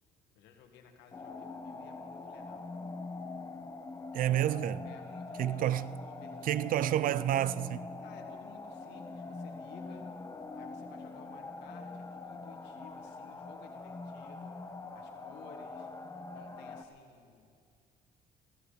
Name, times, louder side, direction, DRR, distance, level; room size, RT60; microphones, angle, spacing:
voice 1, 0.3-2.7 4.8-7.0 8.0-10.1 10.5-14.5 14.9-15.9 16.3-17.6, left 7 dB, 85° left, 1.6 m, -56 dB
sound 1, 1.1-16.8, left 3 dB, 20° left, 0.9 m, -44 dB
voice 2, 4.1-4.9 5.4-5.9 6.4-7.9, right 12 dB, 55° right, 0.4 m, -29 dB
16.5 x 15.0 x 5.0 m
cardioid pair, 110°, 17 cm